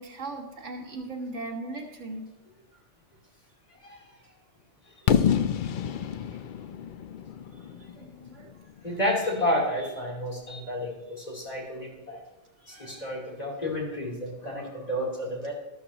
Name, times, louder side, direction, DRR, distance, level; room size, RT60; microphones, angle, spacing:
voice 1, 0.0-2.3 7.7-8.5, right 2 dB, 80° right, 1 dB, 2.0 m, -38 dB
Fireworks, 5.1-8.9, left 8 dB, 60° left, 0.5 m, -27 dB
voice 2, 8.8-12.2 12.7-15.5, left 1 dB, 30° left, -3 dB, 3.5 m, -30 dB
13.0 x 12.5 x 2.9 m, 1.0 s
omnidirectional pair, 1.2 m